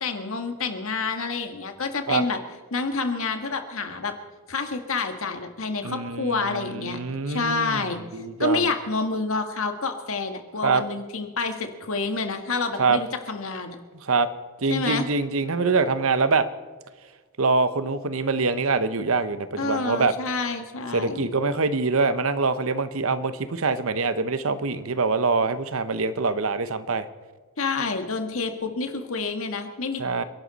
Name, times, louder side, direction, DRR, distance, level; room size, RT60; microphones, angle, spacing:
voice 1, 0.0-2.4 2.7-4.1 4.5-7.0 7.3-8.0 8.4-13.8 14.7-15.1 19.6-21.3 27.6-30.0, left 4 dB, 65° left, 6 dB, 1.6 m, -28 dB
voice 2, 5.8-8.7 10.6-10.8 12.8-13.0 14.0-14.3 14.6-16.5 17.4-20.1 20.9-27.1 30.0-30.2, right 4 dB, 65° right, 12 dB, 0.9 m, -24 dB
29.5 x 11.5 x 4.1 m, 1.4 s
head